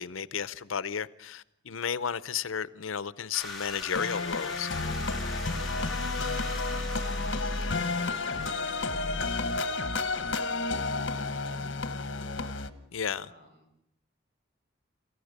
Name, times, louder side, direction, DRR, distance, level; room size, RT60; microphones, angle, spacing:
voice 1, 0.0-4.7 12.9-13.3, left 7 dB, 90° left, 0.7 m, -33 dB
sound 1, 3.3-8.5, left 3 dB, ahead, 3.3 m, -41 dB
sound 2, 3.9-12.7, left 3 dB, 65° left, 1.1 m, -31 dB
voice 2, 6.7-11.9 12.2-12.5 13.2-13.7, equal, 45° right, 4.7 m, -54 dB
28.5 x 14.5 x 6.6 m
head